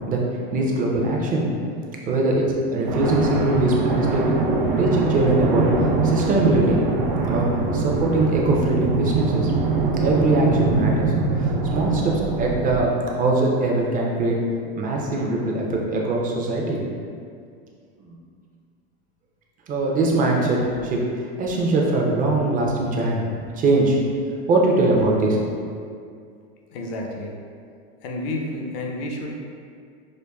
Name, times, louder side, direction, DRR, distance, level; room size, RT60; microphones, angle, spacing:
voice 1, 0.5-1.5 2.1-2.4 2.7-4.2 4.7-5.7 6.0-6.8 7.3-7.5 7.7-9.5 10.0-14.4 14.8-16.8 18.0-18.2 19.7-21.1 21.4-23.3 23.6-24.0 24.5-25.4, right 2 dB, 25° right, -2 dB, 0.6 m, -21 dB
sound 1, 2.9-12.9, right 3 dB, 70° right, 0.7 m, -23 dB
voice 2, 26.7-27.4 28.0-29.3, left 1 dB, 75° left, 0 dB, 0.7 m, -30 dB
5.1 x 2.2 x 2.2 m, 2.3 s
supercardioid pair, 120°, 30 cm